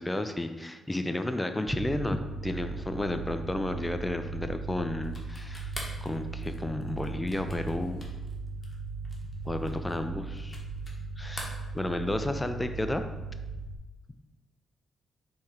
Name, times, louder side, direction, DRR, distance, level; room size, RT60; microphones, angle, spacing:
voice 1, 0.0-5.7 6.0-8.1 9.5-10.6 11.2-13.0, left 1 dB, 15° left, 8 dB, 0.4 m, -32 dB
sound 1, 1.7-13.8, right 4 dB, 85° right, 0.4 m, -38 dB
sound 2, 5.0-11.0 11.3-12.3, left 2 dB, 30° left, 1.1 m, -45 dB
4.2 x 3.2 x 3.7 m, 1.1 s
cardioid pair, 70°, 0 cm